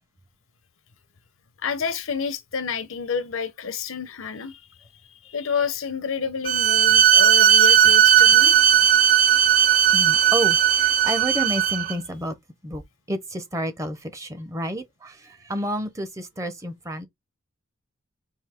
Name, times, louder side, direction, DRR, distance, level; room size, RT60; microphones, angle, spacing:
voice 1, 1.6-4.8 5.1-8.9, left 6 dB, 75° left, 0.7 m, -29 dB
Bowed string instrument, 6.4-11.9, right 9 dB, 40° right, 0.3 m, -17 dB
voice 2, 9.9-12.4 12.6-12.8 13.1-17.1, right 1 dB, 15° right, 0.7 m, -30 dB
4.6 x 2.7 x 3.5 m
head